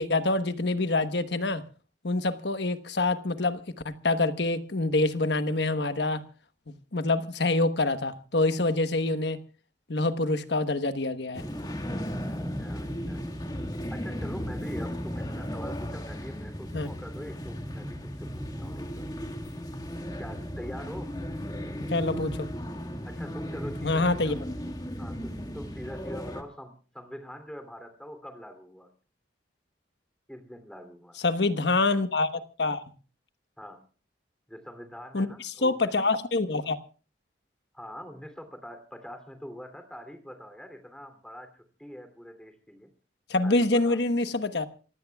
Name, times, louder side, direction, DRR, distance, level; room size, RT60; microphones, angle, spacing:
voice 1, 0.0-1.6 2.0-6.2 6.7-9.4 9.9-11.4 16.7-16.9 21.9-22.5 23.8-24.4 31.2-32.3 32.6-32.8 35.1-36.8 43.3-44.7, left 2 dB, 70° left, 1.2 m, -26 dB
sound 1, 11.3-26.4, equal, 20° left, 1.7 m, -35 dB
voice 2, 12.5-13.5 13.9-19.1 20.2-21.1 23.1-24.5 25.0-28.9 30.3-31.2 33.6-33.8 34.5-35.9 37.7-42.9 43.4-44.0, equal, 5° left, 3.0 m, -44 dB
27.5 x 16.0 x 2.4 m
head